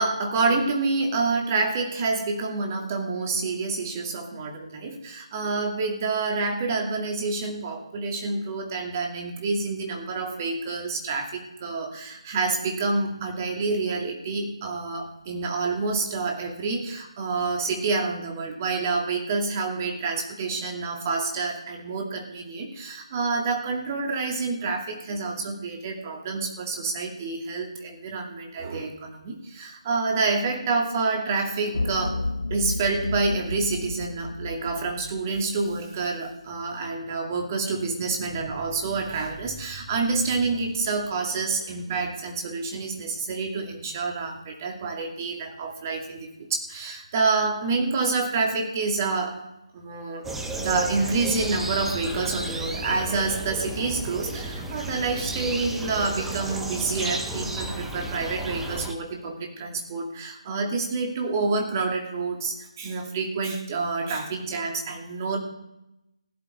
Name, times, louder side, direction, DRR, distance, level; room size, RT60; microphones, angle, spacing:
voice 1, 0.0-32.2 32.5-49.4 49.7-50.2 50.6-65.4, right 3 dB, 30° right, 2 dB, 2.3 m, -28 dB
sound 1, 31.7-36.1, left 2 dB, 80° left, 1.0 m, -32 dB
sound 2, 50.2-58.9, right 2 dB, 5° right, 0.9 m, -33 dB
16.5 x 11.0 x 4.3 m, 0.89 s
figure-of-eight pair, 155°, 3 cm